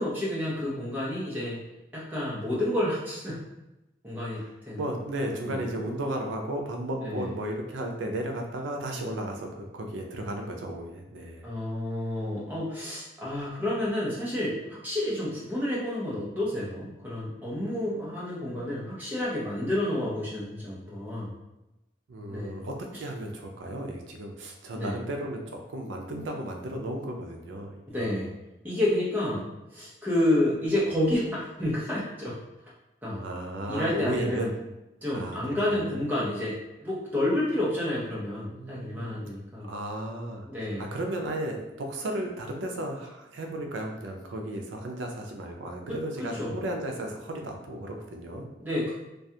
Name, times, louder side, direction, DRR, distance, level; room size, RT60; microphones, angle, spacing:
voice 1, 0.0-1.6 1.9-3.4 4.0-4.9 5.1-5.6 6.9-7.3 11.4-21.3 22.3-22.6 22.9-23.0 24.7-25.0 27.9-28.3 28.6-32.4 33.0-33.2 33.7-34.5 35.0-39.7 40.5-40.9 45.9-46.6 48.6-48.9, left 1 dB, 10° right, -7 dB, 0.6 m, -30 dB
voice 2, 4.8-11.5 22.1-28.0 33.2-34.5 35.1-36.0 38.5-39.3 39.7-40.5 40.9-48.5, right 1 dB, 90° right, 2 dB, 0.4 m, -34 dB
2.4 x 2.2 x 2.7 m, 0.97 s
head